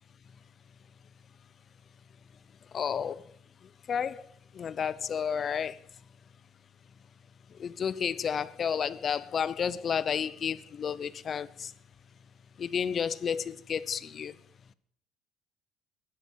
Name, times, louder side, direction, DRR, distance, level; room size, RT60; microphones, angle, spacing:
voice 1, 2.7-3.2 3.9-4.2 4.5-5.8 7.5-11.7 12.6-14.3, left 7 dB, 40° left, 0.8 m, -31 dB
12.5 x 10.0 x 7.4 m
supercardioid pair, 100°, 0 cm